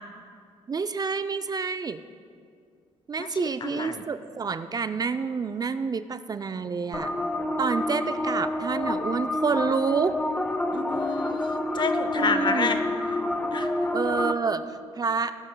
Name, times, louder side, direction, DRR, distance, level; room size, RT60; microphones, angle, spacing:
voice 1, 0.7-2.0 3.1-7.1 7.6-10.2 12.1-12.8 13.9-14.6 15.0-15.3, right 5 dB, 35° right, 11 dB, 0.4 m, -28 dB
voice 2, 3.2-4.0 10.7-12.8 13.5-13.7, left 4 dB, 40° left, 9 dB, 0.8 m, -29 dB
sound 1, 6.9-14.3, left 1 dB, 10° left, 0.7 m, -28 dB
17.0 x 9.7 x 2.2 m, 2.2 s
cardioid pair, 70°, 12 cm